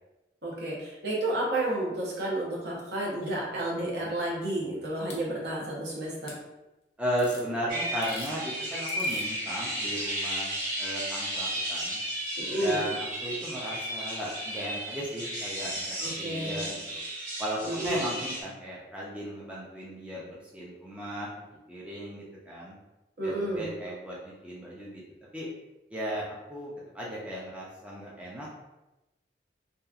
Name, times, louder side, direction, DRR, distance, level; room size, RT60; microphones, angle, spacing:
voice 1, 0.4-6.4 12.4-12.8 16.0-16.6 17.7-18.1 23.2-23.6, right 1 dB, 65° right, -4 dB, 0.8 m, -31 dB
sound 1, 3.2-5.2 6.3-6.4 7.2-7.5 7.9-8.3 8.9-9.3 10.5-10.6, left 3 dB, 75° left, 0.6 m, -48 dB
voice 2, 7.0-10.5 10.8-12.0 12.6-17.0 17.4-21.3 21.7-22.8 23.2-25.0 25.3-25.5 25.9-28.5, equal, 5° right, -6 dB, 0.4 m, -36 dB
sound 2, 7.7-18.4, right 1 dB, 45° right, 1.2 m, -34 dB
2.8 x 2.3 x 2.3 m, 1.0 s
head